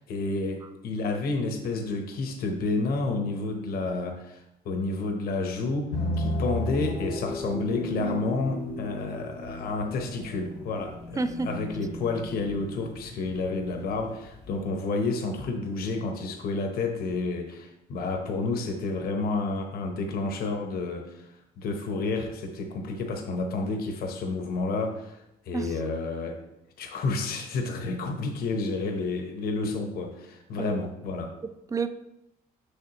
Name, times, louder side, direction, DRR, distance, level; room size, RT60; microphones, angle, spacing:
voice 1, 0.0-26.4 26.8-31.3, left 3 dB, 65° left, 4 dB, 1.0 m, -30 dB
Pipe organ bellows 'dying', 5.9-14.7, left 1 dB, 85° left, 1.7 m, -35 dB
voice 2, 11.2-11.6 25.5-25.7 30.6-30.8 31.4-31.9, right 4 dB, 20° right, 10 dB, 0.5 m, -30 dB
6.6 x 6.3 x 3.0 m, 0.85 s
cardioid pair, 110°, 17 cm